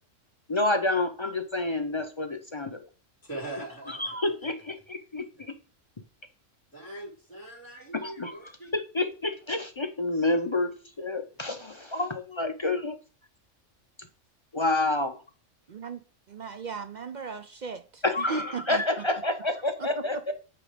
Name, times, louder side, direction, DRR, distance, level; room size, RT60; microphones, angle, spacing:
voice 1, 0.5-2.8 4.0-5.5 7.9-8.3 8.7-10.7 11.0-13.0 14.5-15.2 18.0-20.3, left 2 dB, 40° left, 0.4 m, -28 dB
voice 2, 1.6-2.0 3.2-4.5 5.3-5.4 6.7-8.7 16.5-16.7, right 1 dB, 10° left, 3.0 m, -42 dB
voice 3, 15.7-16.0 16.3-18.8 19.8-20.2, right 5 dB, 55° right, 0.5 m, -37 dB
8.6 x 3.4 x 4.9 m
omnidirectional pair, 1.3 m